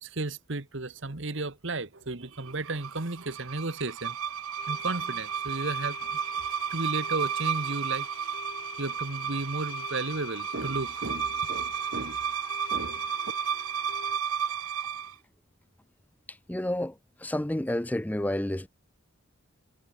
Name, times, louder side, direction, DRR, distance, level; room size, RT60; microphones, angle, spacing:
voice 1, 0.0-4.1 4.7-6.0 6.7-8.1 8.8-12.2 12.7-13.0, right 2 dB, 60° right, 1.4 m, -34 dB
sound 1, 2.5-15.1, right 8 dB, 90° right, 0.8 m, -33 dB
sound 2, 4.6-14.2, left 9 dB, 80° left, 1.3 m, -45 dB
voice 2, 16.3-18.7, left 1 dB, 5° left, 0.4 m, -30 dB
head